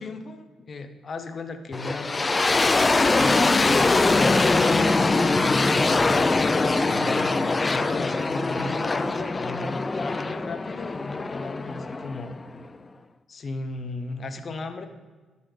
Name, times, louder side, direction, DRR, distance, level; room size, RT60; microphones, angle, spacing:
voice 1, 0.0-2.4 3.1-12.4 13.3-14.9, left 3 dB, 45° left, 8 dB, 0.7 m, -35 dB
sound 1, 1.7-12.7, left 3 dB, 25° left, 0.3 m, -22 dB
sound 2, 2.9-11.0, right 3 dB, 85° right, 1.2 m, -46 dB
11.5 x 4.1 x 4.8 m, 1.3 s
cardioid pair, 90°, 0 cm